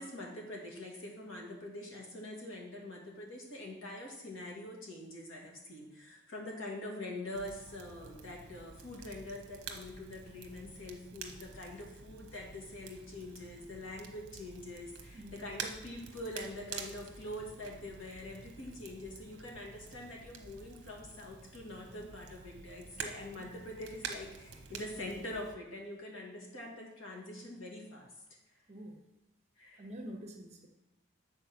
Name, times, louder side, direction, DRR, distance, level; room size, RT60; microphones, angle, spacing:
voice 1, 0.0-28.1 29.6-29.9, left 1 dB, 75° left, -1 dB, 1.9 m, -44 dB
Crackle, 7.3-25.6, right 5 dB, 60° right, 0.9 m, -48 dB
voice 2, 15.1-15.5 23.4-23.5 28.7-29.0 29.8-30.7, equal, 30° right, 2 dB, 1.1 m, -46 dB
8.1 x 4.3 x 6.0 m, 0.93 s
head